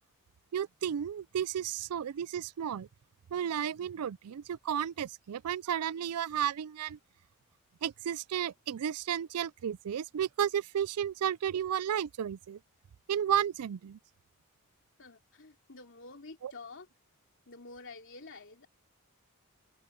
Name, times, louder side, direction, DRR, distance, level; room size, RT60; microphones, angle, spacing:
voice 1, 0.5-2.9 3.3-7.0 7.8-12.6 13.1-14.0 16.4-16.5, right 9 dB, 80° right, 0.4 m, -33 dB
voice 2, 15.0-16.9 17.5-18.7, left 3 dB, 60° left, 3.2 m, -49 dB
head